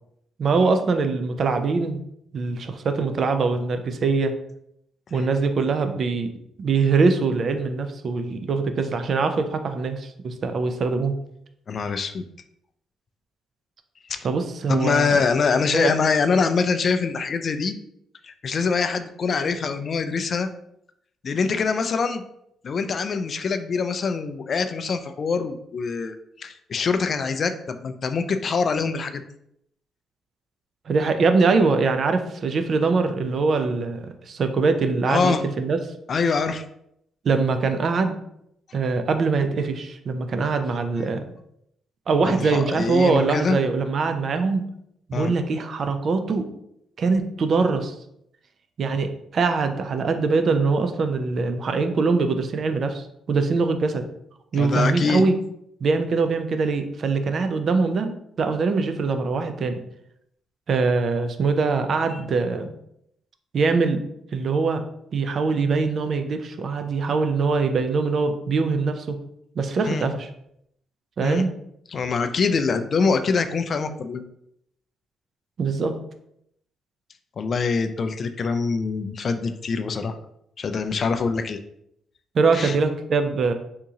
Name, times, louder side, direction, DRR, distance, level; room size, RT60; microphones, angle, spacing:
voice 1, 0.4-2.0 2.3-4.3 5.1-6.3 6.6-11.1 14.2-15.3 15.7-15.9 30.9-35.8 37.2-38.2 38.7-41.3 42.1-44.6 45.1-46.5 47.0-47.9 48.8-54.0 54.5-55.3 55.8-59.8 60.7-62.7 63.5-64.0 64.3-64.8 65.1-69.2 69.6-70.3 71.2-71.5 75.6-75.9 82.3-83.5, right 4 dB, 55° right, 8 dB, 0.4 m, -23 dB
voice 2, 11.7-12.2 14.1-14.3 14.7-17.8 18.2-20.5 21.2-22.2 22.6-29.2 35.1-35.4 36.1-36.6 42.2-43.6 45.1-45.3 54.5-55.3 69.8-70.1 71.2-71.5 71.9-74.2 77.4-80.2 80.6-81.6 82.5-82.8, left 5 dB, 50° left, 9 dB, 0.3 m, -24 dB
3.6 x 2.8 x 2.8 m, 0.75 s
cardioid pair, 90°, 0 cm